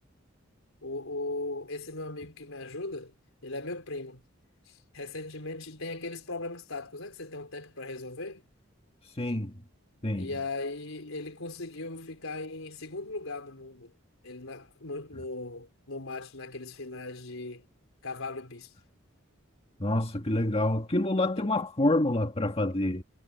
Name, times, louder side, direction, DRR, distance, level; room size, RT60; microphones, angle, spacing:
voice 1, 0.8-3.1 3.4-4.2 4.7-8.4 10.1-13.9 14.2-17.6 18.0-18.7 21.4-21.5, left 2 dB, 85° left, 4.2 m, -38 dB
voice 2, 9.2-9.5 10.0-10.3 19.8-23.0, left 1 dB, 30° left, 1.8 m, -27 dB
head